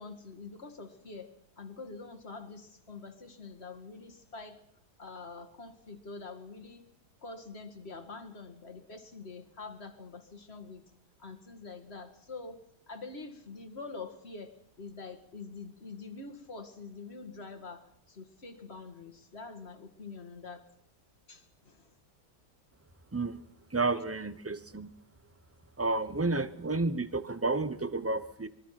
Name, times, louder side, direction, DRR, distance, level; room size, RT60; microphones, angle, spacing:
voice 1, 0.0-4.6 5.0-6.9 7.2-10.8 11.2-12.6 12.9-20.7 21.3-21.9, left 4 dB, 40° left, 6 dB, 2.2 m, -45 dB
voice 2, 23.7-24.9 25.8-28.5, right 3 dB, 15° right, 13 dB, 0.4 m, -31 dB
25.0 x 22.0 x 5.9 m, 0.68 s
omnidirectional pair, 1.8 m